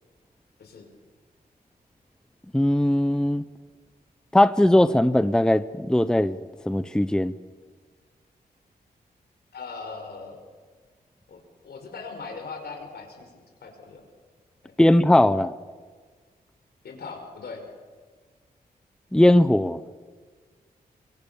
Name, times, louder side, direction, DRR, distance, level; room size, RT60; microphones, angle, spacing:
voice 1, 2.5-3.4 4.3-6.4 6.7-7.3 14.8-15.5 19.1-19.8, left 1 dB, 5° left, 14 dB, 0.7 m, -19 dB
voice 2, 9.5-10.4 11.3-13.3 13.6-14.1 14.6-14.9 16.8-17.6, left 4 dB, 80° left, 4 dB, 5.4 m, -40 dB
24.5 x 24.0 x 7.1 m, 1.5 s
wide cardioid pair, 95°, 16 cm